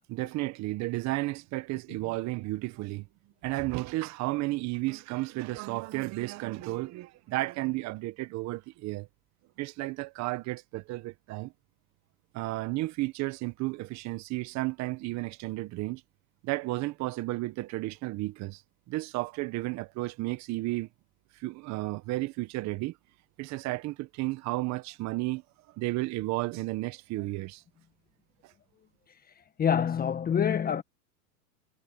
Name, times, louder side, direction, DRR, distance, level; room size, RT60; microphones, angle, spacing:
voice 1, 0.1-3.1 3.4-9.1 9.6-11.5 12.3-16.0 16.4-18.6 18.9-20.9 21.3-22.9 23.4-25.4 25.8-27.6 28.4-28.5, right 20 dB, 35° right, 1.5 m, -33 dB
voice 2, 29.6-30.8, left 8 dB, 20° left, 1.6 m, -26 dB
hypercardioid pair, 125°, 46 cm